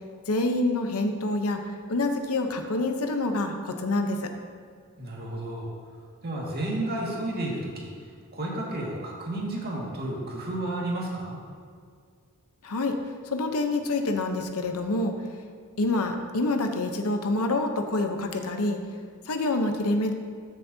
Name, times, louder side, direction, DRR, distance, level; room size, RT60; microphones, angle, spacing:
voice 1, 0.3-1.6 1.9-4.3 12.6-13.0 13.3-15.2 15.8-18.8 19.3-20.1, left 2 dB, 70° left, 5 dB, 0.8 m, -27 dB
voice 2, 5.0-5.7 6.2-7.9 8.3-11.4, right 1 dB, 45° right, -3 dB, 1.9 m, -32 dB
14.0 x 7.3 x 2.8 m, 2.1 s
head